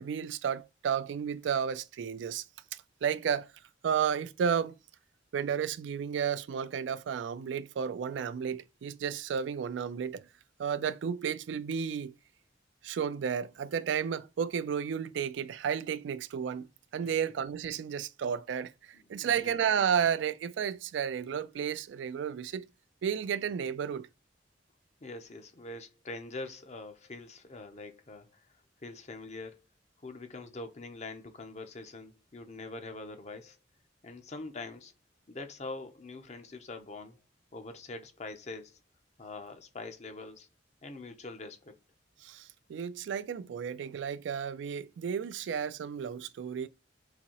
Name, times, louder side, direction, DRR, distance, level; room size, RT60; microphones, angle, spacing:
voice 1, 0.0-2.4 3.0-3.5 3.8-4.7 5.3-10.3 10.6-12.1 12.8-16.7 16.9-22.7 23.0-24.1 42.2-46.7, right 7 dB, 85° right, 0.3 m, -32 dB
voice 2, 18.9-19.5 25.0-29.6 30.0-33.6 34.0-34.9 35.3-37.2 37.5-38.8 39.2-40.5 40.8-41.7, left 3 dB, 40° left, 0.6 m, -44 dB
4.0 x 2.7 x 2.9 m
head